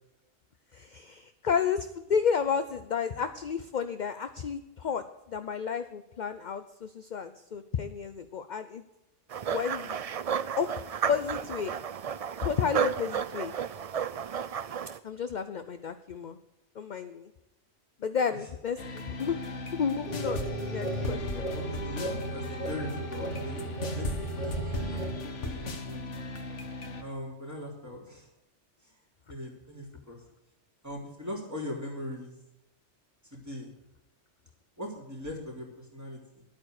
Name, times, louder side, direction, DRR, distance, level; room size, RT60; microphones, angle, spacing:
voice 1, 0.7-8.8 9.5-10.0 10.6-10.7 11.1-11.7 12.4-13.5 15.0-16.4 16.7-17.3 18.0-19.4 19.7-21.5, left 6 dB, 50° left, 10 dB, 0.7 m, -31 dB
sound 1, 9.3-15.0, right 7 dB, 55° right, 0.4 m, -32 dB
sound 2, 18.8-27.0, left 1 dB, 80° left, 1.7 m, -37 dB
sound 3, 20.1-25.1, right 2 dB, 35° right, 4.0 m, -35 dB
voice 2, 21.5-25.0 25.4-26.0 27.0-28.3 29.3-30.2 30.8-32.4 33.3-33.7 34.8-36.5, left 1 dB, 15° right, -2 dB, 3.7 m, -40 dB
11.5 x 9.0 x 6.5 m, 0.96 s
omnidirectional pair, 1.2 m